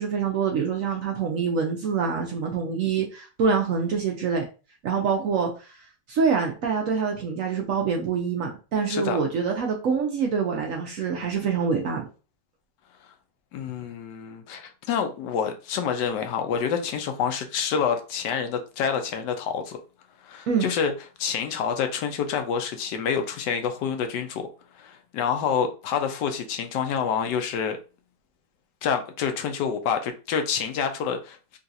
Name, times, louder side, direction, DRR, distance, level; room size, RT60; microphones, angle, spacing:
voice 1, 0.0-4.4 4.8-5.5 6.1-12.0 20.5-20.7, right 5 dB, 65° right, 0.9 m, -25 dB
voice 2, 8.9-9.2 13.5-19.8 20.2-20.9 21.2-24.5 24.7-27.8 28.8-31.4, left 7 dB, 80° left, 1.2 m, -27 dB
3.9 x 2.4 x 2.6 m
omnidirectional pair, 1.8 m